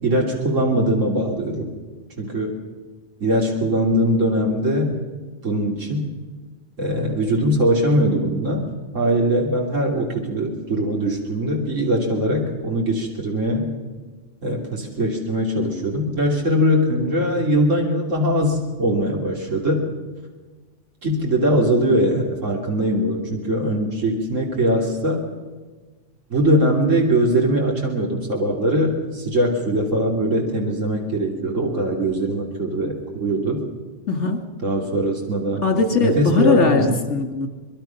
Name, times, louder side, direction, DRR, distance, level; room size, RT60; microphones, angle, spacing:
voice 1, 0.0-1.7 2.2-2.5 3.2-4.9 5.4-6.1 6.8-8.6 8.9-13.7 14.4-19.9 21.0-25.2 26.3-33.6 34.6-35.7 36.0-37.0, right 1 dB, 85° right, 0 dB, 3.5 m, -21 dB
voice 2, 34.1-34.4 35.6-37.5, left 3 dB, 70° left, 5 dB, 3.1 m, -20 dB
25.0 x 22.0 x 5.9 m, 1.3 s
omnidirectional pair, 1.3 m